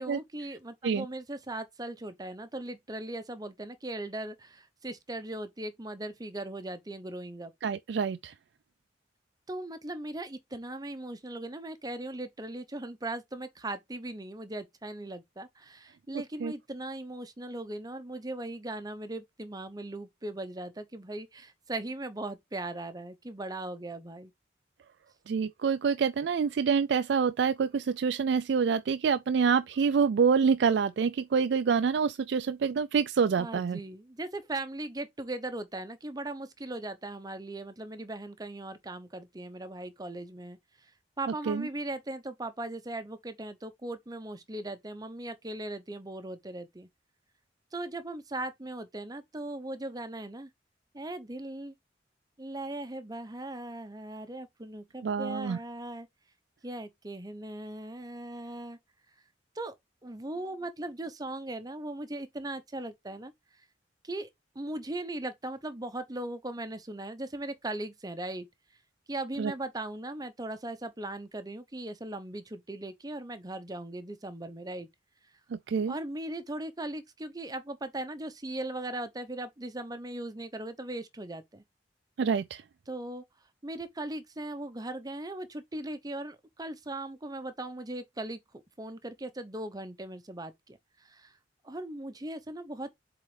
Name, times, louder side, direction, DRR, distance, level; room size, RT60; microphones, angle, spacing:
voice 1, 0.0-7.5 9.5-24.3 33.4-40.9 41.2-46.9 47.7-50.5 50.9-51.7 52.4-56.1 56.6-58.8 59.6-59.8 60.0-63.3 64.0-64.3 64.5-68.5 69.1-74.9 75.9-81.6 82.9-83.2 83.6-91.4 91.6-92.9, right 1 dB, 20° right, 0.8 m, -39 dB
voice 2, 7.6-8.3 16.1-16.5 25.3-33.8 41.5-41.7 55.0-55.6 69.4-69.5 75.5-76.0 82.2-82.6, right 6 dB, 65° right, 0.3 m, -27 dB
7.5 x 3.8 x 3.3 m
head